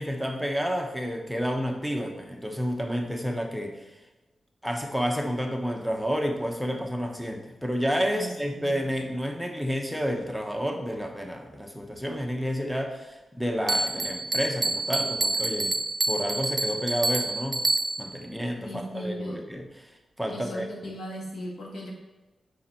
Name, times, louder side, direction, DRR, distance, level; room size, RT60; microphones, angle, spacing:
voice 1, 0.0-4.0 4.6-15.8 16.1-17.6 18.0-20.9, equal, ahead, 3 dB, 0.8 m, -30 dB
Bell, 13.7-18.2, right 2 dB, 40° right, 0.4 m, -28 dB
voice 2, 18.6-19.4 20.3-21.9, equal, 75° left, -1 dB, 1.7 m, -37 dB
7.1 x 5.2 x 4.3 m, 1.1 s
wide cardioid pair, 90°, 0 cm